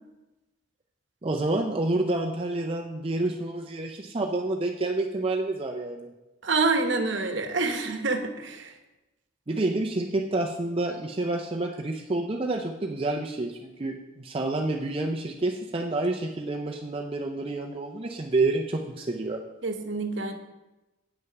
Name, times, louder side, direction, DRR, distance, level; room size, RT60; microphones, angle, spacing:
voice 1, 1.2-6.1 9.5-19.4, right 2 dB, 25° right, 2 dB, 0.5 m, -28 dB
voice 2, 6.4-8.7 19.6-20.3, right 3 dB, 60° right, 6 dB, 1.0 m, -27 dB
9.0 x 6.4 x 5.9 m, 1.0 s
head